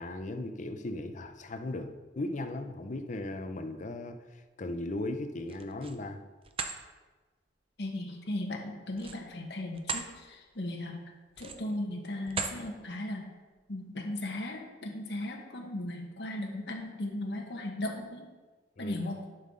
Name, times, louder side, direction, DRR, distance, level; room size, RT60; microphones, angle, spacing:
voice 1, 0.0-4.2 4.6-6.2 18.8-19.0, left 2 dB, 45° left, 8 dB, 0.6 m, -37 dB
sound 1, 5.4-6.0 6.4-6.8 8.9-10.1 10.6-10.7 11.3-11.8 12.3-12.6, right 5 dB, 30° right, 0.6 m, -37 dB
voice 2, 7.8-11.0 11.4-13.3 13.7-18.3 18.8-19.2, left 1 dB, 70° left, 1 dB, 1.4 m, -37 dB
11.0 x 5.7 x 3.8 m, 1.3 s
head